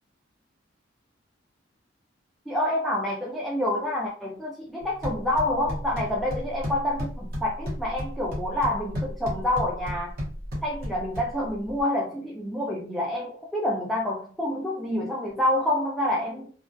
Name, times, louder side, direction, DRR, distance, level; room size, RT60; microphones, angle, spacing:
voice 1, 2.5-10.1 10.6-16.5, left 1 dB, ahead, 0.3 m, -27 dB
sound 1, 4.8-11.8, equal, 50° right, 0.8 m, -34 dB
2.3 x 2.1 x 2.5 m
head